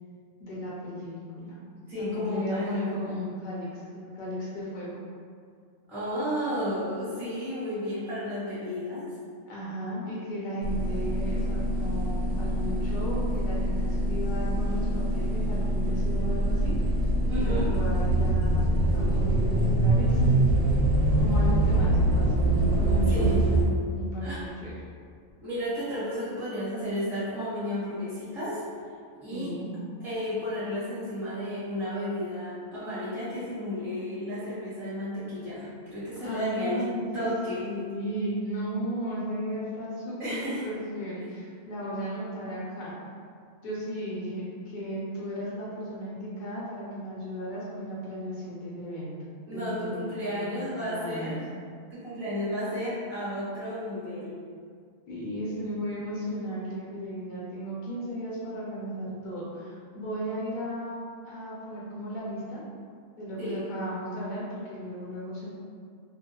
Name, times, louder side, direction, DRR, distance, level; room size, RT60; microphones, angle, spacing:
voice 1, 0.4-1.6 2.0-5.0 9.5-16.7 17.3-18.7 18.9-20.7 21.2-23.3 23.9-24.7 29.3-29.7 36.2-37.1 37.6-42.9 43.6-49.1 49.5-51.4 55.1-62.6 63.2-65.5, equal, 45° left, -7 dB, 0.7 m, -35 dB
voice 2, 1.9-3.1 5.9-9.0 17.3-17.7 23.1-23.3 24.2-24.4 25.4-28.6 29.2-29.5 30.0-36.8 37.1-37.7 40.2-40.7 49.4-51.4 51.9-54.4 63.4-63.6, equal, ahead, -12 dB, 0.7 m, -32 dB
sound 1, 10.6-23.6, right 1 dB, 75° right, 0.9 m, -24 dB
2.5 x 2.1 x 2.9 m, 2.1 s
omnidirectional pair, 1.4 m